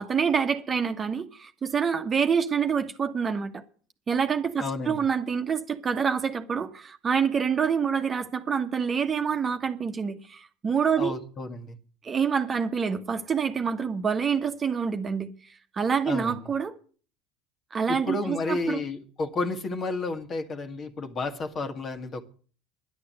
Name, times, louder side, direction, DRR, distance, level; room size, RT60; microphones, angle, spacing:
voice 1, 0.0-3.6 4.1-11.2 12.0-16.8 17.7-18.8, right 6 dB, 30° right, 1.3 m, -27 dB
voice 2, 4.6-5.0 11.0-11.8 16.1-16.4 17.9-22.2, left 3 dB, 35° left, 1.8 m, -31 dB
11.0 x 10.5 x 7.7 m
figure-of-eight pair, 70°, 0 cm